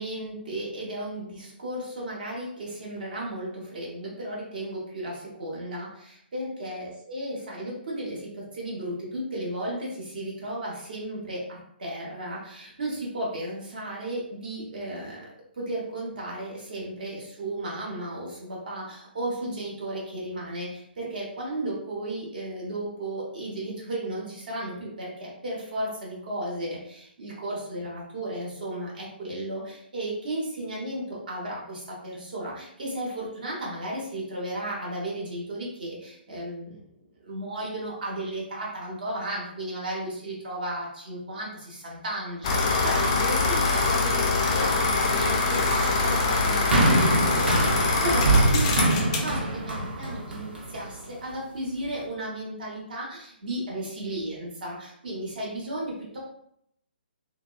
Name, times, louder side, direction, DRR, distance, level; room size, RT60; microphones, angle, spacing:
voice 1, 0.0-15.2 15.6-36.8 37.2-56.2, right 1 dB, 50° right, -4 dB, 1.2 m, -34 dB
sound 1, 42.4-49.3, left 3 dB, 30° left, 0.4 m, -24 dB
sound 2, 46.7-51.1 51.8-51.9, right 2 dB, 70° right, 0.9 m, -24 dB
3.4 x 2.0 x 2.3 m, 0.72 s
figure-of-eight pair, 135°, 6 cm